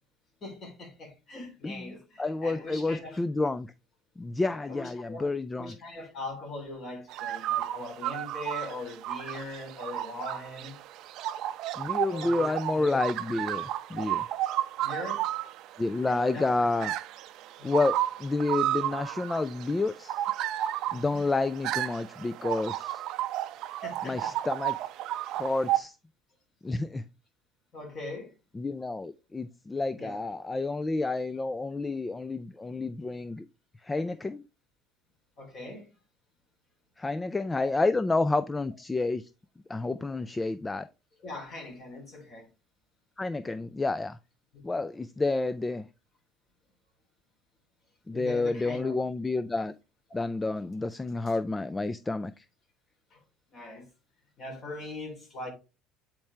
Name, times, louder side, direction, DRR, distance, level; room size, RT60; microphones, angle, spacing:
voice 1, 0.4-3.2 4.5-5.3 5.6-10.8 12.1-13.0 14.8-15.3 16.0-16.7 17.6-17.8 20.9-21.2 23.8-24.4 27.7-28.3 30.0-30.2 35.4-35.9 41.2-42.5 44.5-44.6 48.1-49.0 53.1-53.2 53.5-53.9 54.4-55.5, left 2 dB, 35° left, 3.2 m, -41 dB
voice 2, 2.2-3.7 4.2-5.7 11.8-14.3 15.8-16.9 17.6-20.2 20.9-23.0 24.0-24.8 25.4-26.0 26.6-27.0 28.6-33.4 33.8-34.4 37.0-39.3 39.7-40.9 43.2-44.2 44.6-45.8 48.1-49.7 50.1-52.4, left 3 dB, 15° left, 0.3 m, -29 dB
sound 1, 7.1-25.8, right 13 dB, 60° right, 0.5 m, -33 dB
8.6 x 4.5 x 3.2 m
cardioid pair, 140°, 0 cm